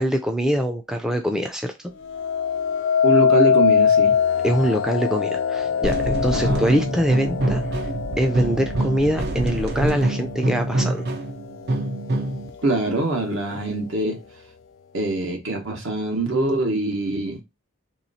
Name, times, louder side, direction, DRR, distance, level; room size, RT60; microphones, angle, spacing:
voice 1, 0.0-1.7 4.4-7.6 8.2-11.0, equal, 5° right, 0.4 m, -23 dB
sound 1, 2.0-11.2 11.7-12.2, left 7 dB, 60° left, 0.4 m, -23 dB
voice 2, 3.0-4.2 6.3-6.7 7.8-7.9 12.6-14.2 14.9-17.4, right 2 dB, 65° right, 1.3 m, -24 dB
sound 2, 5.8-12.5, right 1 dB, 50° right, 0.6 m, -25 dB
3.1 x 3.0 x 4.0 m
head